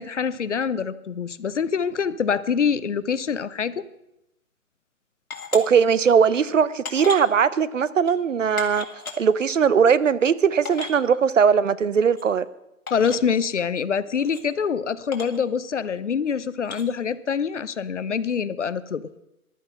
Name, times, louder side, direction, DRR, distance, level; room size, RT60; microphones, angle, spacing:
voice 1, 0.0-3.8 12.9-19.1, left 6 dB, 55° left, 16 dB, 0.7 m, -25 dB
sound 1, 5.3-5.6 6.3-6.4 6.8-7.3 8.0-8.1 8.6-9.2 10.0-10.1 10.2-10.3 10.6-11.0 12.1-12.2 12.9-13.2 14.2-14.4 15.1-15.4 16.6-16.8, left 4 dB, 70° left, 2.5 m, -35 dB
voice 2, 5.5-8.9 9.2-12.4, right 6 dB, 55° right, 17 dB, 0.7 m, -19 dB
14.5 x 11.0 x 5.6 m, 0.87 s
hypercardioid pair, 170°, 44 cm